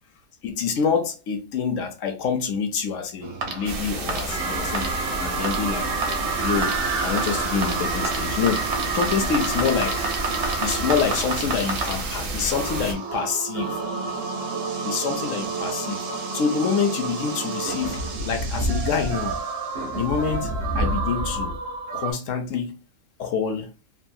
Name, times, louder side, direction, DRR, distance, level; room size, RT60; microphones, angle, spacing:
voice 1, 0.4-4.9 5.2-5.9 6.4-8.6 8.9-10.1 10.6-13.8 14.8-16.0 16.3-19.4 19.9-21.5 21.9-22.7 23.2-23.7, left 6 dB, 70° left, 0.9 m, -26 dB
sound 1, 3.2-22.1, right 3 dB, 85° right, 1.2 m, -28 dB
sound 2, 3.7-12.9, right 3 dB, 55° right, 0.6 m, -31 dB
3.1 x 2.3 x 2.6 m
omnidirectional pair, 1.5 m